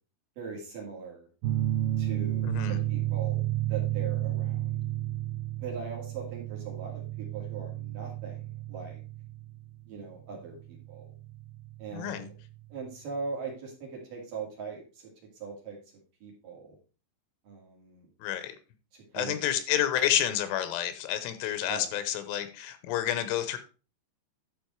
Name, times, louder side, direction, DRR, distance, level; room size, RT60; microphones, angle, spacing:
voice 1, 0.4-1.3 2.0-3.4 3.7-4.8 5.6-9.0 9.9-11.1 11.8-12.3 12.7-15.1 15.4-15.8 16.2-16.7 17.5-18.1 18.9-19.3 21.6-21.9, right 5 dB, 50° right, -2 dB, 3.6 m, -40 dB
sound 1, 1.4-12.6, right 14 dB, 70° right, 2.4 m, -32 dB
voice 2, 2.4-2.8 11.9-12.2 18.2-18.6 19.1-23.6, left 11 dB, 80° left, 11 dB, 3.2 m, -29 dB
12.0 x 5.2 x 4.5 m, 0.34 s
omnidirectional pair, 5.7 m